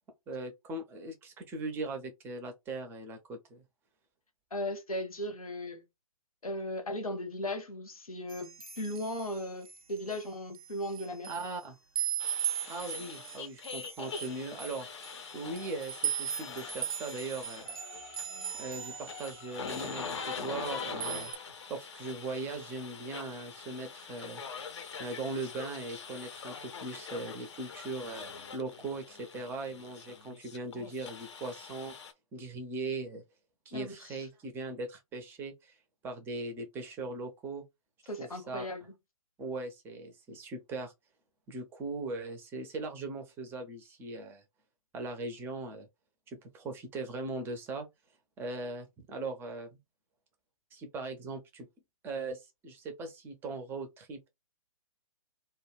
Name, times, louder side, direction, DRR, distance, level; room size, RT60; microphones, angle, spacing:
voice 1, 0.3-3.6 11.3-11.8 12.7-14.9 15.3-17.8 18.6-21.3 21.7-24.4 25.0-32.0 32.3-33.2 33.7-35.8 36.0-37.6 38.2-38.6 39.4-40.9 41.5-44.4 44.9-45.9 46.3-47.9 48.4-49.8 50.7-51.7 52.0-54.3, right 3 dB, 10° right, 0.5 m, -39 dB
voice 2, 4.5-5.8 6.4-11.3 33.7-34.2 38.1-38.8, left 1 dB, 80° left, 0.9 m, -37 dB
sound 1, 8.3-10.2 10.5-11.6 12.0-19.4 19.7-20.7 21.0-21.4, right 9 dB, 75° right, 0.4 m, -38 dB
sound 2, 12.2-32.1, left 5 dB, 50° left, 0.6 m, -43 dB
2.3 x 2.2 x 3.1 m
figure-of-eight pair, 125°, 18 cm